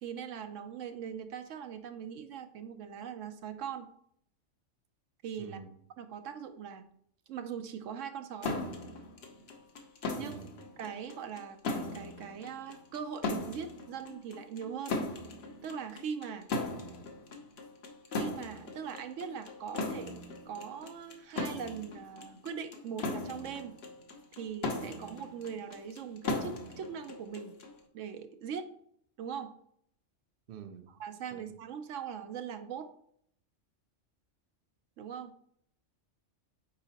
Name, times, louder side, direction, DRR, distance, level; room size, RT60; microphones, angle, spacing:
voice 1, 0.0-3.9 5.2-5.6 6.0-6.9 7.3-8.5 10.1-10.4 10.8-15.0 15.6-16.5 18.1-20.1 20.5-23.8 24.3-27.6 27.9-28.7 29.2-29.5 31.0-32.9 35.0-35.3, right 7 dB, 80° right, 9 dB, 1.0 m, -41 dB
voice 2, 5.4-5.7 10.2-10.5 16.6-17.0 30.5-30.9 31.3-31.5, right 8 dB, 55° right, 8 dB, 0.7 m, -48 dB
sound 1, 8.4-27.8, left 2 dB, 60° left, 1.0 m, -38 dB
8.9 x 3.9 x 2.8 m, 0.67 s
omnidirectional pair, 1.3 m